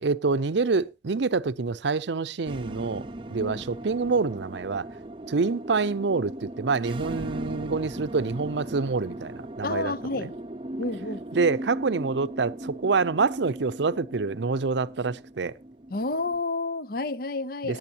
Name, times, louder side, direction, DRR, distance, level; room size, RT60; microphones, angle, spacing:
voice 1, 0.0-4.9 5.3-9.9 10.2-10.3 11.3-15.5 17.7-17.8, right 4 dB, 70° right, 0.6 m, -26 dB
sound 1, 2.5-16.4, right 1 dB, 30° right, 0.6 m, -38 dB
voice 2, 9.6-10.4 10.8-11.2 15.9-17.8, left 2 dB, 50° left, 0.7 m, -30 dB
18.0 x 9.3 x 2.9 m
head